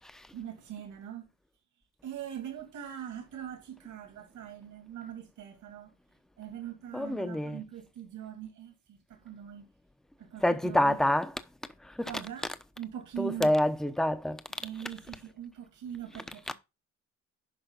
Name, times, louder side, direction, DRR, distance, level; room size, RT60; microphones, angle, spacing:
voice 1, 0.3-1.3 2.0-5.9 6.4-9.7 10.2-11.0 12.0-12.5 12.8-13.5 14.5-16.5, right 10 dB, 80° right, 2.9 m, -42 dB
voice 2, 6.9-7.6 10.4-11.3 11.8-12.1 13.2-14.4, left 1 dB, ahead, 0.8 m, -27 dB
10.5 x 5.5 x 4.0 m
cardioid pair, 90°, 30 cm